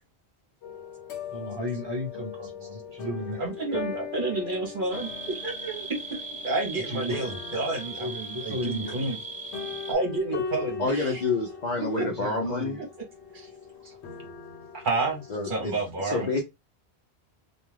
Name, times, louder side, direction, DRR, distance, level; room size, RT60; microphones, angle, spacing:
sound 1, 0.6-15.8, left 6 dB, 85° left, 0.9 m, -40 dB
voice 1, 1.3-3.4 6.9-7.4 7.9-9.2 11.9-12.8, left 1 dB, 25° right, 1.0 m, -35 dB
voice 2, 3.4-5.1 5.4-9.2 9.9-11.2 11.8-12.1 13.3-13.5 13.8-14.0 14.7-16.4, right 3 dB, 50° right, 0.9 m, -30 dB
sound 2, 4.9-9.9, right 3 dB, 10° right, 0.6 m, -38 dB
voice 3, 10.8-12.8 15.3-16.4, left 3 dB, 50° left, 0.6 m, -28 dB
2.3 x 2.3 x 3.1 m
omnidirectional pair, 1.1 m